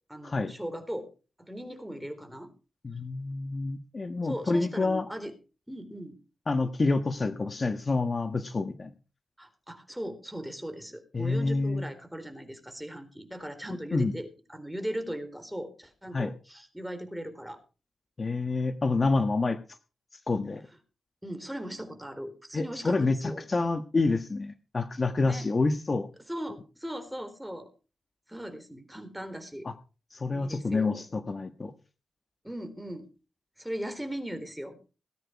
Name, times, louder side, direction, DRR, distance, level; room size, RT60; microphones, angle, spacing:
voice 1, 0.1-1.1 1.4-2.5 4.2-5.3 5.7-6.2 9.4-17.6 21.2-23.4 25.2-25.5 26.2-27.7 28.3-29.7 30.3-31.0 32.4-33.1 33.6-34.8, equal, 5° right, 7 dB, 4.0 m, -38 dB
voice 2, 2.8-5.1 6.5-8.9 11.1-11.9 13.9-14.1 16.1-16.3 18.2-19.6 20.3-20.6 22.5-26.1 29.6-29.7 30.1-31.7, left 3 dB, 40° left, 8 dB, 1.4 m, -28 dB
18.5 x 9.3 x 4.7 m, 0.35 s
cardioid pair, 70°, 0 cm